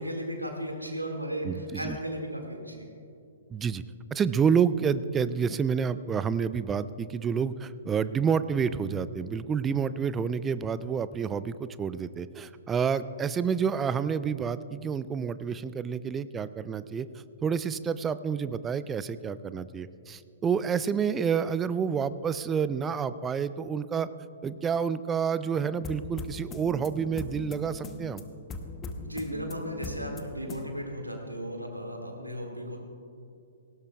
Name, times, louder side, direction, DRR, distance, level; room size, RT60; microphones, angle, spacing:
voice 1, 0.0-2.9 28.9-32.8, equal, 90° right, 2 dB, 2.0 m, -35 dB
voice 2, 1.4-2.0 3.5-3.8 4.1-24.1 24.4-28.2, right 6 dB, 15° right, 15 dB, 0.4 m, -29 dB
sound 1, 25.5-30.7, left 3 dB, 20° left, 0.9 m, -40 dB
18.5 x 16.5 x 2.3 m, 2.6 s
figure-of-eight pair, 115°, 0 cm